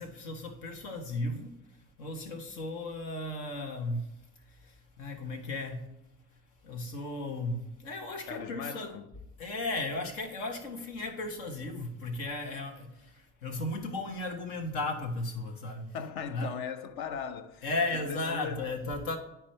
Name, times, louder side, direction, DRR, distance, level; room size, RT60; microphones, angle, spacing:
voice 1, 0.0-1.5 2.0-4.1 4.5-5.8 6.6-8.9 9.4-15.9 16.3-16.5 17.6-19.2, left 2 dB, 80° left, 1.2 m, -35 dB
voice 2, 8.3-9.1 15.9-17.7 17.9-18.7, left 6 dB, 60° left, 0.8 m, -38 dB
9.9 x 4.5 x 3.2 m
hypercardioid pair, 50°, 41 cm